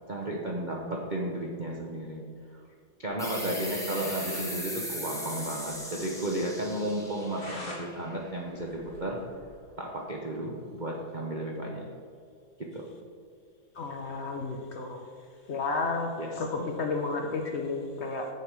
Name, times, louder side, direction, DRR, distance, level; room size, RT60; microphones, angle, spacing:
voice 1, 0.1-2.2 2.5-2.6 3.0-9.2 9.8-11.9 12.6-12.8 16.2-16.4, right 1 dB, 65° right, -1 dB, 0.4 m, -33 dB
sound 1, 3.2-8.5, equal, ahead, 1.0 m, -38 dB
sound 2, 3.7-4.5 4.8-4.9 5.2-5.3 5.7-5.8 6.2-6.3 6.9-7.8 8.2-9.6, left 1 dB, 40° left, 2.3 m, -45 dB
voice 2, 13.7-15.0 15.5-16.1 16.4-18.3, left 3 dB, 70° left, 2 dB, 0.6 m, -32 dB
7.0 x 6.9 x 4.7 m, 2.4 s
omnidirectional pair, 2.0 m